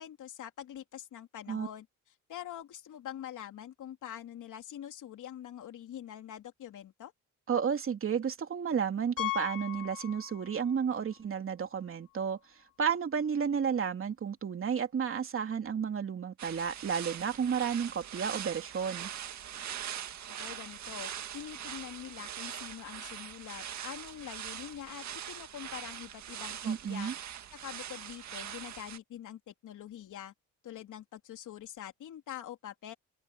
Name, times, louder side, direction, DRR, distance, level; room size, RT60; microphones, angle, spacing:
voice 1, 0.0-1.9 2.3-7.1 20.4-27.1 27.5-30.3 30.6-32.9, left 11 dB, 65° left, 3.3 m, -45 dB
voice 2, 7.5-12.4 12.8-19.1 26.6-27.1, right 7 dB, 40° right, 2.8 m, -32 dB
Piano, 9.2-10.8 11.0-11.2 11.8-11.9 12.1-12.2 14.3-14.4, left 18 dB, 85° left, 2.2 m, -38 dB
sound 1, 16.4-29.0, right 10 dB, 55° right, 1.9 m, -42 dB
cardioid pair, 130°, 33 cm